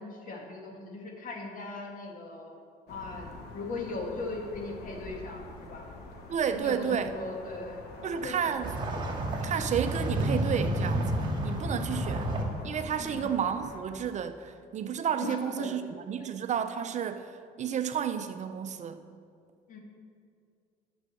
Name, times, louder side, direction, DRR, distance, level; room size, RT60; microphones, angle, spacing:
voice 1, 0.0-2.6 2.9-5.9 6.5-7.8 8.2-8.4 8.6-8.7 12.0-12.2 13.0-13.3 15.2-15.7 19.7-19.8, left 3 dB, 55° left, 1 dB, 2.0 m, -39 dB
sound 1, 2.9-13.8, left 3 dB, 75° left, 1.3 m, -46 dB
voice 2, 6.3-7.1 8.0-8.7 9.4-12.3 12.6-19.0, right 8 dB, 45° right, 8 dB, 0.6 m, -31 dB
sound 2, 8.6-12.4, right 1 dB, 30° right, 2.6 m, -30 dB
10.5 x 6.4 x 6.5 m, 2.3 s
cardioid pair, 110°, 17 cm